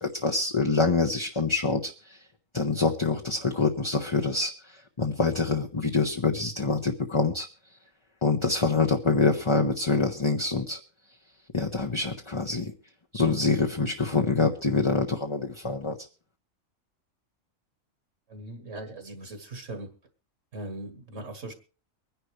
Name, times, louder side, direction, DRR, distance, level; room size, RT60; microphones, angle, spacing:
voice 1, 0.0-2.2 2.5-4.5 5.0-7.5 8.2-10.8 11.5-12.7 13.1-16.0, left 3 dB, 25° left, 1.0 m, -25 dB
voice 2, 18.3-19.9 20.5-21.5, right 2 dB, 65° right, 2.1 m, -39 dB
24.5 x 10.5 x 3.2 m
omnidirectional pair, 1.4 m